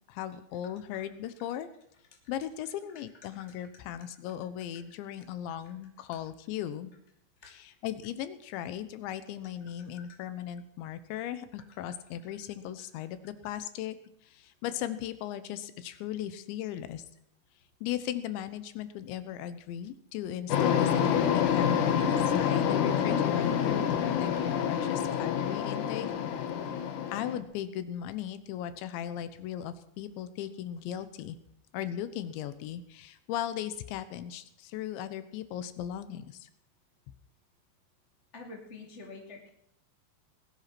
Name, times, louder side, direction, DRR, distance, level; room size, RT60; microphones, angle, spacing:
voice 1, 0.1-1.7 2.3-6.9 7.5-14.0 14.3-17.0 17.8-26.1 27.1-31.4 31.7-36.5, left 11 dB, 90° left, 12 dB, 3.3 m, -37 dB
sound 1, 20.5-27.4, left 8 dB, 65° left, 2.0 m, -27 dB
voice 2, 38.3-39.5, left 3 dB, 20° left, -1 dB, 2.0 m, -46 dB
19.5 x 11.0 x 6.0 m, 0.74 s
omnidirectional pair, 5.1 m